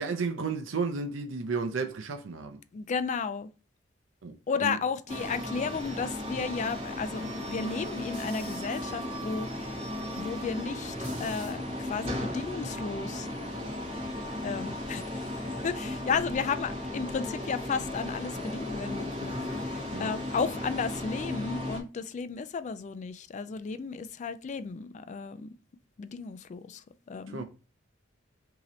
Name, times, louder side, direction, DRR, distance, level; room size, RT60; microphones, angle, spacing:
voice 1, 0.0-2.6 4.2-4.3 4.6-4.8 19.9-20.1 27.3-27.4, right 4 dB, 85° right, 0.6 m, -32 dB
voice 2, 2.7-3.5 4.5-9.8 10.1-13.3 14.4-15.2 15.6-19.3 19.6-25.5 26.0-27.4, left 5 dB, 40° left, 0.3 m, -33 dB
sound 1, 5.1-21.8, left 1 dB, 30° right, 1.2 m, -35 dB
3.0 x 2.8 x 3.8 m
head